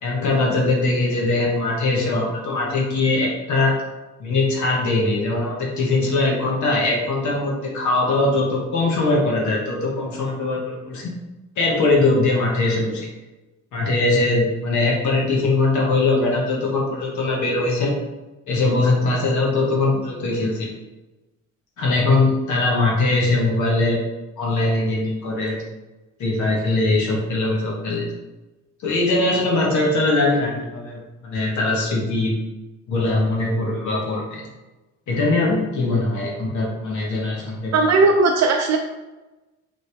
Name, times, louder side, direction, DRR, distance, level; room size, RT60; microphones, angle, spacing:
voice 1, 0.0-3.7 4.2-11.1 11.6-13.1 13.7-17.9 18.5-20.7 21.8-24.0 24.4-25.6 26.2-28.1 28.8-32.3 32.9-34.4 35.1-37.7, left 2 dB, 75° left, -2 dB, 1.1 m, -21 dB
voice 2, 37.7-38.8, right 3 dB, 60° right, 2 dB, 0.5 m, -17 dB
3.9 x 3.4 x 3.3 m, 1.1 s
cardioid pair, 90°, 30 cm